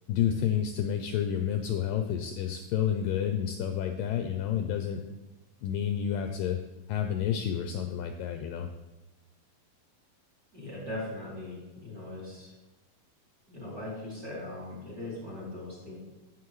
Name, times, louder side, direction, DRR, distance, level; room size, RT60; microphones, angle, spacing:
voice 1, 0.1-5.0 5.6-6.6 6.9-8.7, left 9 dB, 80° left, 5 dB, 2.0 m, -30 dB
voice 2, 10.5-12.5 13.5-15.9, left 1 dB, 25° right, -6 dB, 3.1 m, -39 dB
9.5 x 9.0 x 3.1 m, 1.1 s
omnidirectional pair, 4.3 m